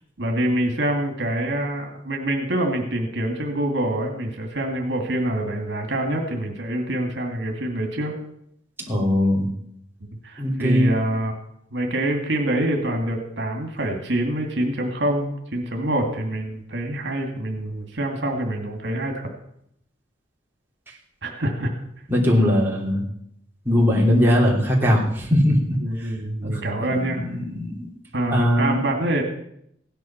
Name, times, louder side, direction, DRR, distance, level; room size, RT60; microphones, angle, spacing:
voice 1, 0.2-8.1 10.0-11.3 11.7-19.3 21.2-21.8 25.8-27.2 28.1-29.2, right 1 dB, 65° right, 2 dB, 2.3 m, -25 dB
voice 2, 8.8-9.5 10.4-10.9 22.1-23.0 23.6-26.1 26.4-26.6 26.9-27.9 28.3-28.8, equal, 10° right, -4 dB, 3.0 m, -20 dB
16.0 x 10.5 x 5.9 m, 0.74 s
head